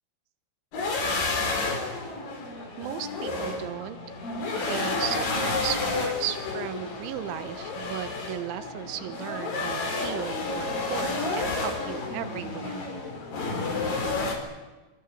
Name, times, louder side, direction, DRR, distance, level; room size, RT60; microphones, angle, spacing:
sound 1, 0.7-14.4, left 3 dB, 50° left, 5.7 m, -30 dB
voice 1, 2.8-4.0 4.5-12.9, right 12 dB, 90° right, 11 dB, 3.7 m, -36 dB
27.5 x 25.0 x 7.6 m, 1.2 s
omnidirectional pair, 5.3 m